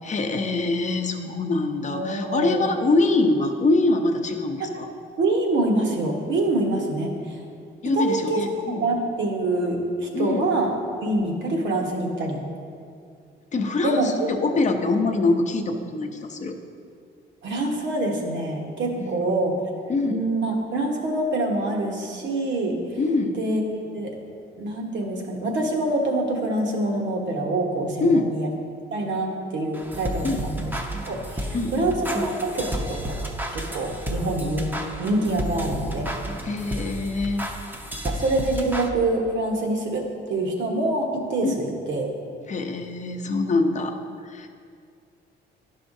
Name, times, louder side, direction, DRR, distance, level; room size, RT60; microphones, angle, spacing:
voice 1, 0.0-4.9 7.8-8.8 10.1-10.5 13.5-16.6 19.0-19.3 19.9-20.2 23.0-23.4 28.0-28.3 30.2-30.4 31.5-31.9 36.4-37.5 41.4-41.6 42.5-44.0 44.2-44.5, left 2 dB, 35° left, 5 dB, 0.7 m, -24 dB
voice 2, 1.9-2.7 4.6-4.7 5.2-7.4 7.9-8.4 8.7-10.7 11.0-12.4 13.8-14.1 17.4-19.6 20.0-22.8 23.3-24.1 24.6-28.5 28.9-30.7 31.0-31.9 32.2-33.2 33.5-34.7 35.0-36.1 38.0-40.0 40.3-42.1, right 2 dB, 70° right, 1 dB, 1.2 m, -25 dB
sound 1, 29.7-38.9, right 1 dB, 10° right, 0.7 m, -32 dB
11.0 x 5.6 x 2.6 m, 2.3 s
cardioid pair, 90°, 20 cm